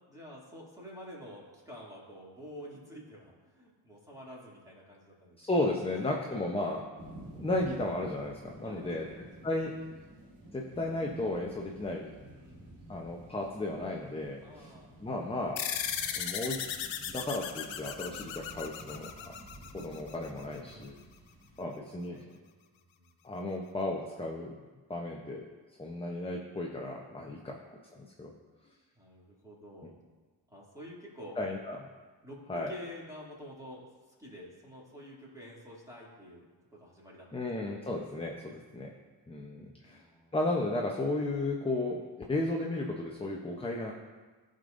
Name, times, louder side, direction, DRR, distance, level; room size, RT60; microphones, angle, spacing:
voice 1, 0.1-5.4 6.1-6.3 8.6-9.7 12.2-12.9 14.4-15.1 16.0-16.2 20.5-21.2 21.6-21.8 22.0-22.4 22.7-23.2 25.0-25.2 27.2-27.5 29.0-30.0 30.5-31.4 32.2-36.5 36.7-37.4 38.4-38.8 39.8-40.3, equal, 5° right, -5 dB, 2.5 m, -49 dB
voice 2, 5.4-6.8 7.3-9.0 9.4-9.7 10.5-12.1 12.9-14.7 15.0-15.6 16.2-16.6 17.1-19.3 19.7-20.9 21.6-22.2 23.2-24.5 24.9-25.5 25.8-27.6 27.9-28.3 31.4-31.8 32.5-32.7 37.3-38.9 39.3-40.0 40.3-43.9, left 2 dB, 10° left, 0 dB, 0.7 m, -34 dB
sound 1, 7.0-21.6, right 1 dB, 85° right, 1.8 m, -52 dB
sound 2, 15.6-20.4, left 9 dB, 70° left, 0.7 m, -37 dB
12.5 x 5.3 x 2.6 m, 1.4 s
cardioid pair, 70°, 47 cm